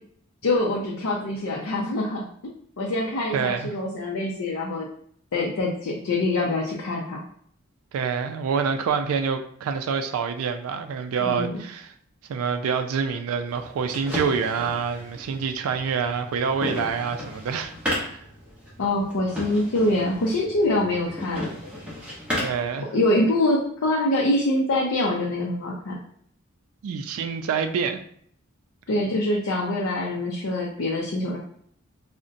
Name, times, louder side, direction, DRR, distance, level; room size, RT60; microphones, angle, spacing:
voice 1, 0.4-2.3 2.8-4.9 5.3-7.2 11.2-11.6 18.8-21.4 22.9-26.0 28.9-31.4, left 1 dB, 80° left, 0.5 m, -24 dB
voice 2, 3.3-3.7 7.9-11.9 12.3-18.2 22.4-22.9 26.8-28.0, right 6 dB, 85° right, 0.3 m, -27 dB
sound 1, 13.5-22.7, left 1 dB, 5° right, 0.7 m, -34 dB
3.8 x 2.1 x 2.5 m
head